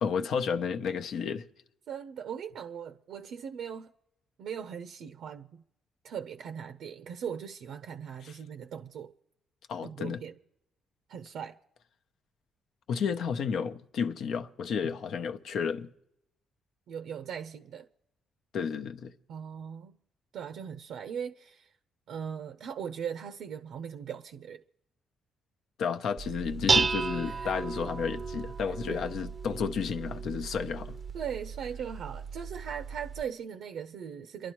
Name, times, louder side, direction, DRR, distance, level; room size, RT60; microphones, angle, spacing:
voice 1, 0.0-1.5 9.7-10.2 12.9-15.9 18.5-19.1 25.8-31.0, left 6 dB, 70° left, 0.8 m, -32 dB
voice 2, 1.9-3.9 4.4-5.6 6.0-9.1 9.8-10.4 11.1-11.6 16.9-17.9 19.3-20.0 20.3-21.7 22.1-24.6 27.2-27.5 28.9-29.0 31.1-34.5, right 8 dB, 75° right, 0.6 m, -39 dB
Dishes pots and pans, 26.2-33.2, right 4 dB, 35° right, 0.5 m, -33 dB
29.5 x 11.5 x 3.0 m
cardioid pair, 90°, 0 cm